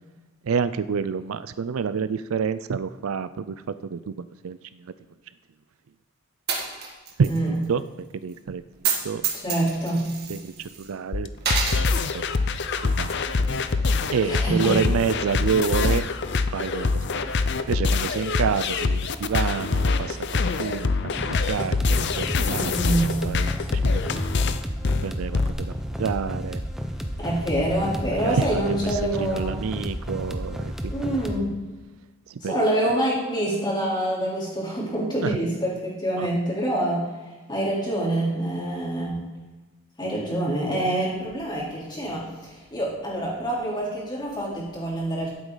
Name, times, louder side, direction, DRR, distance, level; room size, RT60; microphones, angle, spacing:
voice 1, 0.4-3.6 3.9-4.9 7.2-7.8 8.2-8.6 9.0-9.2 10.3-11.3 12.1-12.2 12.8-13.4 14.1-16.1 16.5-17.0 17.7-20.9 21.3-22.7 23.0-23.5 23.8-24.0 25.0-25.4 26.0-26.6 28.2-28.6 29.2-31.2 32.3-32.6 35.2-35.3 36.2-36.3, right 6 dB, 75° right, 14 dB, 0.4 m, -28 dB
Coin (dropping), 6.5-7.4 7.6-7.7 8.7-9.0 9.2-10.9 11.4-11.8, right 6 dB, 50° right, 2.0 m, -27 dB
voice 2, 7.3-7.6 9.3-10.1 14.2-14.8 22.4-23.2 27.2-29.6 30.9-31.5 32.4-37.1 37.5-39.2 40.0-45.3, right 1 dB, 20° left, -6 dB, 3.5 m, -26 dB
sound 1, 11.1-25.5, left 4 dB, 55° left, 0.6 m, -24 dB
sound 2, 21.2-31.4, equal, ahead, 0.7 m, -32 dB
14.0 x 8.1 x 4.0 m, 1.2 s
head